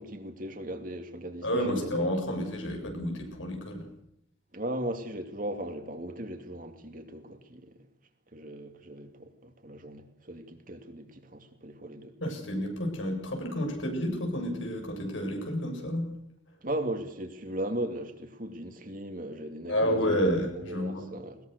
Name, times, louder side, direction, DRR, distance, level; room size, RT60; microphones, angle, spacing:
voice 1, 0.0-2.1 4.5-7.8 8.3-12.1 16.6-21.4, right 1 dB, 45° right, 2.7 m, -37 dB
voice 2, 1.4-3.9 12.2-16.1 19.7-21.1, equal, 85° left, 7.7 m, -30 dB
21.5 x 20.5 x 6.8 m
head